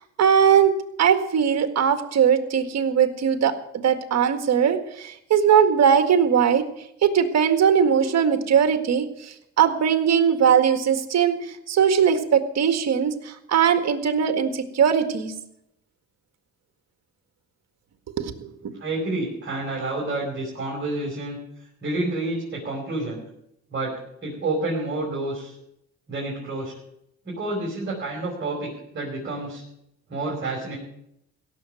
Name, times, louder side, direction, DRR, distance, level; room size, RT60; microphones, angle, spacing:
voice 1, 0.2-3.5 3.8-6.6 7.0-15.3 18.2-18.5, right 8 dB, 60° right, 8 dB, 1.9 m, -20 dB
voice 2, 18.8-21.4 21.8-23.2 23.7-23.9 24.2-25.5 26.1-26.7 27.3-29.6 30.1-30.8, right 2 dB, 35° right, -4 dB, 5.2 m, -29 dB
16.5 x 7.3 x 9.1 m, 0.78 s
cardioid pair, 90°, 30 cm